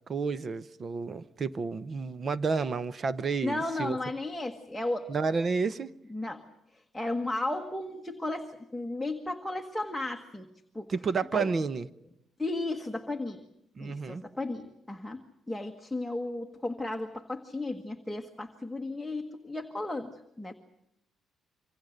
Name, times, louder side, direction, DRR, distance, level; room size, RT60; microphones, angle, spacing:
voice 1, 0.1-4.0 5.1-5.9 10.9-11.9 13.8-14.2, right 4 dB, 35° right, 0.9 m, -30 dB
voice 2, 3.4-5.1 6.1-6.4 6.7-10.5 10.7-10.9 11.3-11.5 12.4-13.5 13.8-20.5, left 2 dB, 5° left, 1.5 m, -34 dB
27.0 x 25.0 x 6.6 m
cardioid pair, 130°, 0 cm